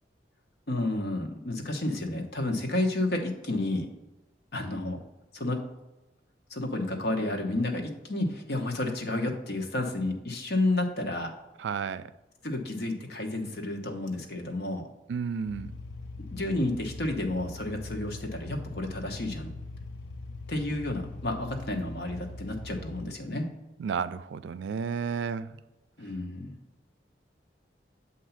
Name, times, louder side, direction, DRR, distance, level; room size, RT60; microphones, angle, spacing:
voice 1, 0.7-3.9 4.5-5.0 5.3-5.6 6.5-11.3 12.4-14.8 16.3-19.5 20.5-23.5 26.0-26.5, left 2 dB, 65° left, 1.0 m, -31 dB
voice 2, 11.6-12.1 15.1-15.8 23.8-25.6, right 6 dB, 90° right, 0.4 m, -32 dB
sound 1, 15.5-23.0, left 2 dB, 90° left, 0.5 m, -42 dB
7.9 x 2.7 x 5.6 m
head